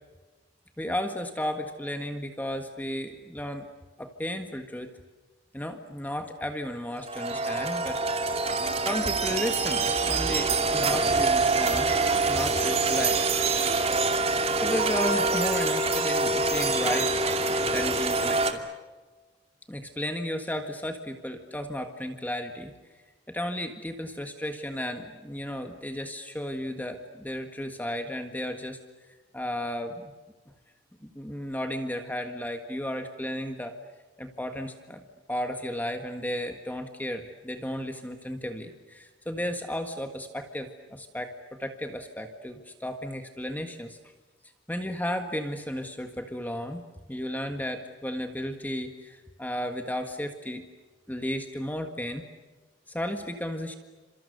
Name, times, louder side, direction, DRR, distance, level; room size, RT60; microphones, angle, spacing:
voice 1, 0.8-3.7 4.0-4.9 5.5-8.0 8.8-12.0 12.3-13.2 14.6-17.2 17.7-18.6 19.7-22.7 23.3-28.8 29.3-30.1 31.0-33.7 34.2-35.0 35.3-44.0 44.7-46.8 47.1-50.6 51.1-52.3 52.9-53.7, equal, 10° left, 5 dB, 1.7 m, -34 dB
sound 1, 7.0-18.5, right 3 dB, 35° right, 2.6 m, -25 dB
30.0 x 27.5 x 6.8 m, 1.3 s
head